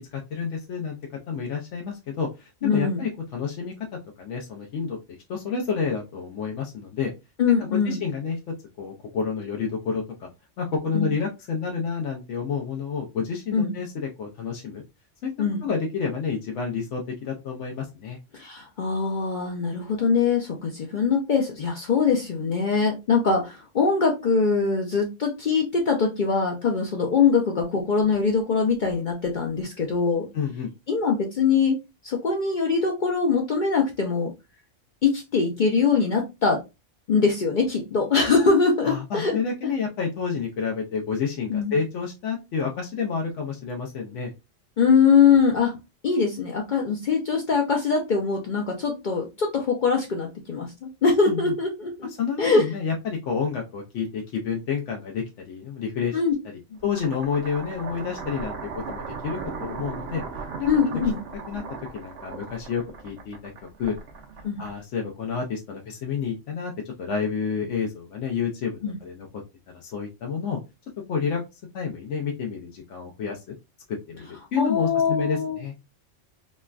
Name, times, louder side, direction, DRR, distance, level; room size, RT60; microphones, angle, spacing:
voice 1, 0.1-1.0 1.3-3.7 4.2-5.0 5.3-7.1 7.6-8.4 8.8-10.3 10.6-14.8 15.2-15.3 15.6-18.2 30.3-30.7 38.8-44.3 51.3-51.5 52.2-58.5 58.9-60.2 60.6-60.7 61.5-61.6 61.9-63.5 63.8-63.9 64.6-66.7 67.0-69.3 69.7-70.6 71.1-71.4 71.7-73.6 74.1-75.7, left 6 dB, 80° left, 0 dB, 0.9 m, -29 dB
voice 2, 2.6-3.0 7.4-8.0 10.9-11.1 13.5-13.7 15.4-15.6 18.3-30.3 30.9-31.8 32.0-34.3 35.0-36.6 37.1-39.4 41.5-41.7 44.8-45.7 46.0-52.1 52.4-52.6 56.1-56.3 60.7-61.2 64.4-64.6 68.8-68.9 74.6-75.6, left 5 dB, 55° left, 1 dB, 0.6 m, -22 dB
sound 1, 56.8-65.1, right 5 dB, 65° right, 0.8 m, -37 dB
3.1 x 2.1 x 2.3 m, 0.25 s
omnidirectional pair, 1.2 m